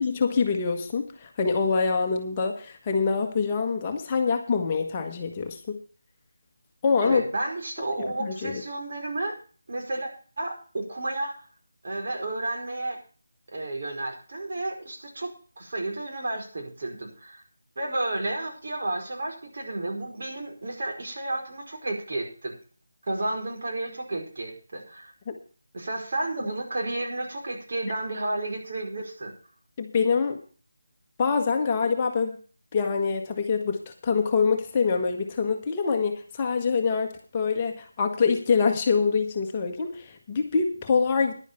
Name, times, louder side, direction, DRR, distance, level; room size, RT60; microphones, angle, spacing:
voice 1, 0.0-5.8 6.8-7.2 8.2-8.6 25.3-25.4 29.8-30.4 31.2-32.4 32.7-41.3, left 5 dB, 25° left, 3 dB, 1.4 m, -25 dB
voice 2, 7.0-9.3 9.7-10.1 10.4-11.5 11.8-13.0 13.5-17.4 17.8-22.5 23.1-25.1 25.7-29.3, right 2 dB, 50° right, 1 dB, 4.8 m, -32 dB
11.0 x 9.9 x 5.7 m, 0.40 s
figure-of-eight pair, 165°, 0 cm